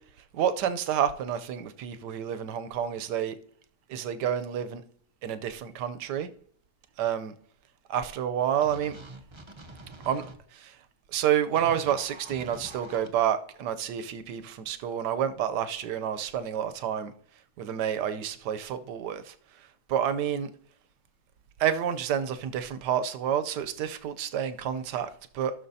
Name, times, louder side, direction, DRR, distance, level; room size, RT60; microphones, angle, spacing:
voice 1, 0.3-3.4 3.9-4.8 5.2-6.3 7.0-7.3 7.9-9.0 10.1-10.2 10.5-10.8 11.1-17.1 17.6-19.3 19.9-20.5 21.6-25.5, right 9 dB, 80° right, 1.3 m, -29 dB
sound 1, 8.6-10.4 11.5-13.1, right 2 dB, 30° right, 0.5 m, -45 dB
16.0 x 6.4 x 2.7 m
omnidirectional pair, 1.8 m